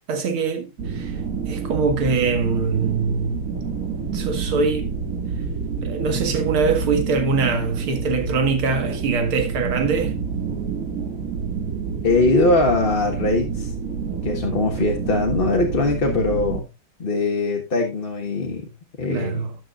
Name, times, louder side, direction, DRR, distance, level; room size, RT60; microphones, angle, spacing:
voice 1, 0.1-1.2 1.4-3.5 4.1-4.9 5.8-10.1 19.1-19.6, right 4 dB, 75° right, 2.6 m, -23 dB
sound 1, 0.8-16.6, right 5 dB, 40° right, 2.1 m, -28 dB
voice 2, 12.0-13.7 14.2-16.7 17.0-18.7 19.0-19.5, left 2 dB, 30° left, 1.3 m, -21 dB
13.5 x 9.0 x 2.5 m
omnidirectional pair, 2.3 m